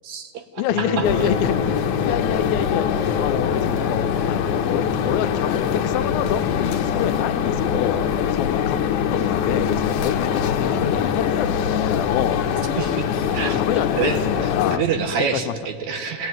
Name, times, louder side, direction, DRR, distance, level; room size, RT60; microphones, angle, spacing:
voice 1, 0.0-0.4 0.8-0.9 1.2-1.3 12.8-13.0 13.3-13.6 14.0-16.3, right 6 dB, 60° right, 7 dB, 2.7 m, -26 dB
voice 2, 0.6-2.9 3.2-8.0 8.3-12.4 13.5-14.8 15.2-15.6, left 10 dB, 90° left, 10 dB, 2.6 m, -27 dB
Guitar, 0.7-7.3, left 2 dB, 5° left, 3.7 m, -33 dB
sound 1, 1.0-14.8, left 8 dB, 65° left, 2.4 m, -23 dB
29.5 x 17.5 x 9.3 m, 2.8 s
omnidirectional pair, 4.1 m